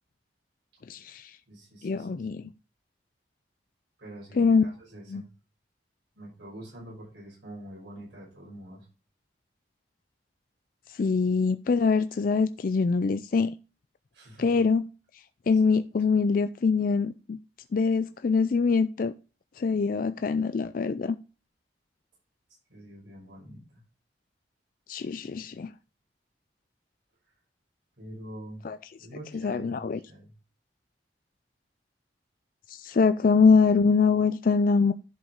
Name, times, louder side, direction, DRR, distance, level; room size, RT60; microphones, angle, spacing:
voice 1, 0.9-1.3 1.8-2.5 4.4-4.7 5.1-5.2 10.9-13.5 14.4-14.8 15.5-17.4 17.7-19.1 19.6-21.2 24.9-25.7 28.6-28.8 29.4-30.0 32.7-34.9, left 5 dB, 50° left, 0.4 m, -24 dB
voice 2, 1.5-2.1 2.4-2.5 4.0-5.3 6.1-8.9 14.1-14.6 15.5-15.6 22.7-23.8 28.0-28.6 29.0-30.3, right 1 dB, 85° right, 5.6 m, -45 dB
11.0 x 5.0 x 3.8 m
head